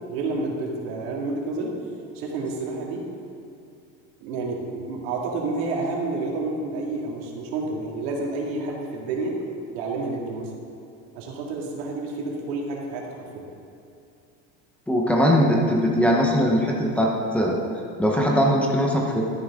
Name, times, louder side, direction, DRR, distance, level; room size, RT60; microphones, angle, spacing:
voice 1, 0.1-1.7 2.1-3.0 4.2-9.3 9.7-10.5 11.1-13.4, right 3 dB, 80° right, -1 dB, 2.4 m, -29 dB
voice 2, 14.9-17.6 18.0-19.2, equal, 5° left, -2 dB, 0.9 m, -20 dB
12.5 x 9.9 x 3.7 m, 2.6 s
cardioid pair, 170°, 32 cm